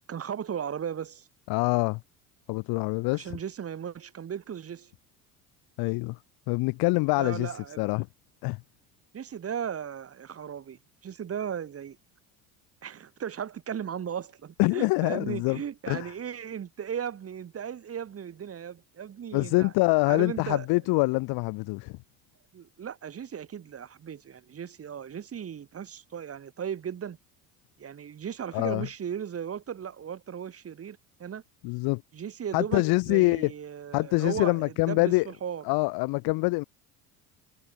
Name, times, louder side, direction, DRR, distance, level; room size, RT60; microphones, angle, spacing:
voice 1, 0.1-1.3 3.1-4.9 7.2-7.8 9.1-12.0 12.8-19.7 20.1-20.7 22.5-27.2 27.8-31.4 32.1-35.6, right 8 dB, 30° right, 1.3 m, -36 dB
voice 2, 1.5-2.0 2.5-3.4 5.8-6.2 6.5-8.1 8.4-8.6 14.6-15.6 15.9-16.1 19.3-22.0 28.5-28.9 31.6-32.0 32.5-33.5 33.9-35.3 35.6-36.6, left 25 dB, 55° left, 0.5 m, -25 dB
hypercardioid pair, 75°, 45 cm